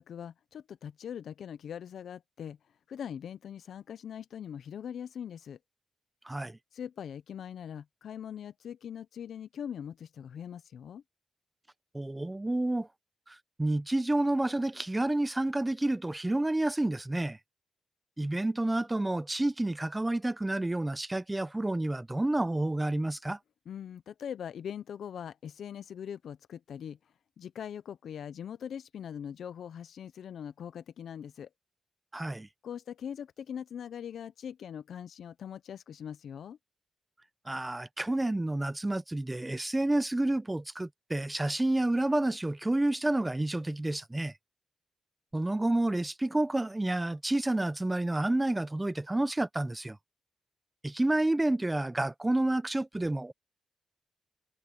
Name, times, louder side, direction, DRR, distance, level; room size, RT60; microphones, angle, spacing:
voice 1, 0.0-2.6 2.9-5.6 6.7-11.0 23.7-31.5 32.6-36.6, left 8 dB, 75° left, 0.5 m, -41 dB
voice 2, 6.2-6.6 11.9-12.9 13.3-17.4 18.2-23.4 32.1-32.5 37.5-44.3 45.3-50.0 50.8-53.3, right 1 dB, 10° right, 0.6 m, -29 dB
wide cardioid pair, 145°, 0 cm